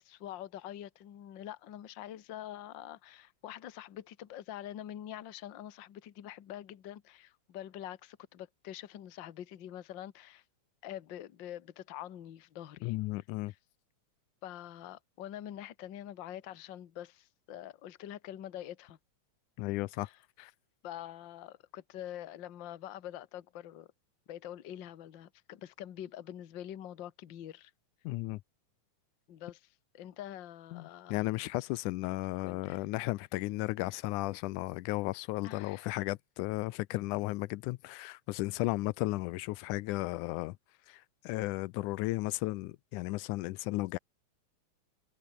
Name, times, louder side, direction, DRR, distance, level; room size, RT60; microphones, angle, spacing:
voice 1, 0.0-10.4 10.8-12.9 13.5-13.6 14.4-19.0 20.0-20.2 20.8-23.9 24.3-27.7 29.3-31.3 32.4-32.9 35.4-35.9, left 11 dB, 50° left, 1.5 m, -45 dB
voice 2, 12.8-13.5 19.6-20.1 20.4-20.5 28.1-28.4 30.7-40.6 40.9-44.0, left 19 dB, 85° left, 2.1 m, -34 dB
omnidirectional pair, 3.6 m